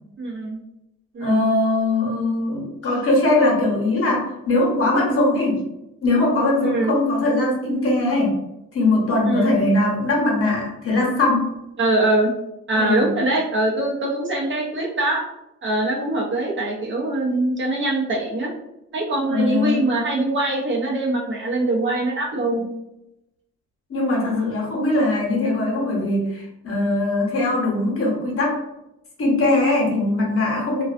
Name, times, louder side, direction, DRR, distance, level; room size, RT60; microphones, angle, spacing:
voice 1, 0.2-0.6 1.1-1.5 6.6-6.9 9.2-9.5 11.8-12.3 12.7-15.3 15.6-18.5 18.9-22.7, right 2 dB, 40° right, -2 dB, 0.6 m, -23 dB
voice 2, 1.2-5.6 6.0-8.4 8.7-11.5 12.7-13.2 19.3-19.9 23.9-28.6 29.2-30.8, left 2 dB, 50° left, -2 dB, 0.9 m, -21 dB
2.3 x 2.3 x 2.4 m, 0.88 s
cardioid pair, 90°, 30 cm